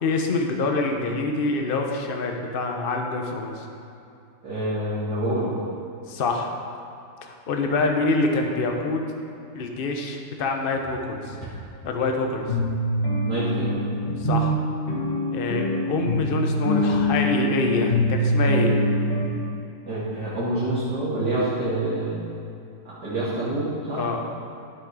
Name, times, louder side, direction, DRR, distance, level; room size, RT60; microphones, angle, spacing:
voice 1, 0.0-3.6 6.1-6.5 7.3-9.0 9.5-11.3 11.8-12.5 14.2-14.5 15.3-18.7 24.0-24.2, left 3 dB, 40° left, 2 dB, 0.9 m, -25 dB
voice 2, 4.4-5.5 13.3-13.8 19.9-22.2 23.0-24.0, right 1 dB, 70° right, -11 dB, 2.7 m, -27 dB
sound 1, 10.7-10.8 11.3-11.4 11.8-11.9 12.5-19.3, equal, 25° left, 1.9 m, -24 dB
11.5 x 7.7 x 4.9 m, 2.7 s
omnidirectional pair, 1.8 m